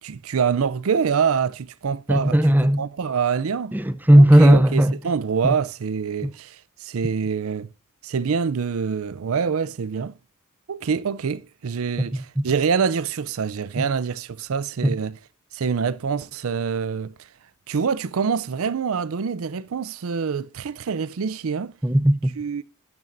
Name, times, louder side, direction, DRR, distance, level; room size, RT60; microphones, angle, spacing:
voice 1, 0.0-2.4 2.8-3.8 4.1-7.7 8.0-10.1 10.7-15.2 15.5-17.1 17.7-21.7 22.4-22.6, right 6 dB, 70° right, 0.5 m, -25 dB
voice 2, 2.1-2.8 3.7-4.9 13.8-13.9 14.8-14.9 21.8-22.2, right 1 dB, 10° right, 0.6 m, -15 dB
12.0 x 10.5 x 2.6 m
head